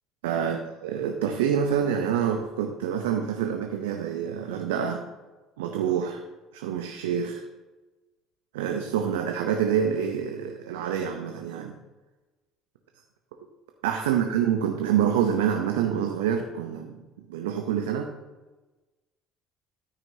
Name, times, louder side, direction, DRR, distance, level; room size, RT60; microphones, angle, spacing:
voice 1, 0.2-5.0 5.6-6.2 6.5-7.4 8.5-11.7 13.8-17.0 17.3-18.1, right 8 dB, 85° right, 4 dB, 0.6 m, -27 dB
13.5 x 6.0 x 2.8 m, 1.2 s
hypercardioid pair, 65°, 0 cm